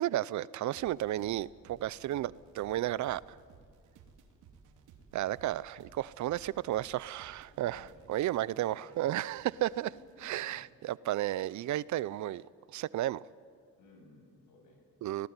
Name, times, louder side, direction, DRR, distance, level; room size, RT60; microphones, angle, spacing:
voice 1, 0.0-3.2 5.1-9.9 10.2-12.5 12.7-13.3 15.0-15.3, right 14 dB, 70° right, 21 dB, 0.6 m, -33 dB
sound 1, 0.7-10.4, right 5 dB, 90° right, 2.7 m, -59 dB
voice 2, 7.7-8.0 8.5-9.0 10.2-10.6 13.8-14.8, left 2 dB, 80° left, 2 dB, 7.5 m, -57 dB
26.0 x 18.5 x 9.7 m, 2.1 s
cardioid pair, 90°, 30 cm